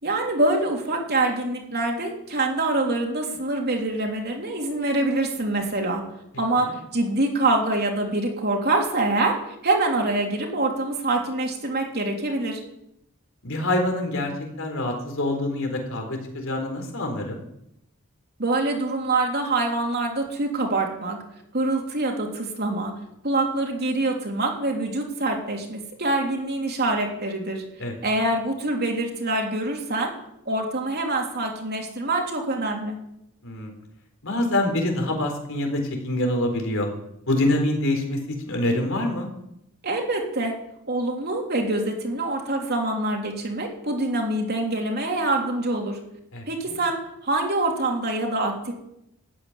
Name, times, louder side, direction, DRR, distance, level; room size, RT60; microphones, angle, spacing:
voice 1, 0.0-6.0 6.4-9.4 9.6-12.6 18.4-21.2 21.5-22.9 23.2-27.6 28.0-30.1 30.4-33.0 39.8-40.6 40.9-46.0 46.5-48.7, right 2 dB, 45° right, 1 dB, 3.4 m, -25 dB
voice 2, 13.4-14.3 14.6-17.4 27.8-27.9 33.4-33.7 34.2-36.9 37.3-38.2 38.5-39.3 46.3-46.4, left 1 dB, 60° left, 3 dB, 4.2 m, -25 dB
13.5 x 9.7 x 10.0 m, 0.80 s
head